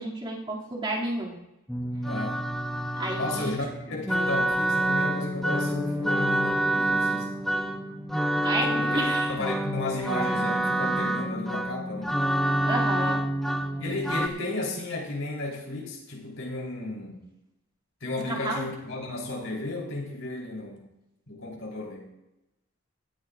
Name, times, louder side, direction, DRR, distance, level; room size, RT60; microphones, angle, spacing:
voice 1, 0.0-1.4 3.0-3.5 8.4-9.3 12.7-13.2 18.3-18.6, right 1 dB, 25° right, -4 dB, 2.5 m, -31 dB
sound 1, 1.7-14.3, right 1 dB, ahead, 0.7 m, -27 dB
voice 2, 2.1-2.4 3.2-7.3 8.6-12.2 13.0-13.1 13.8-17.2 18.0-20.9 21.3-22.1, left 2 dB, 75° left, -2 dB, 3.8 m, -34 dB
18.0 x 13.5 x 2.5 m, 0.94 s
head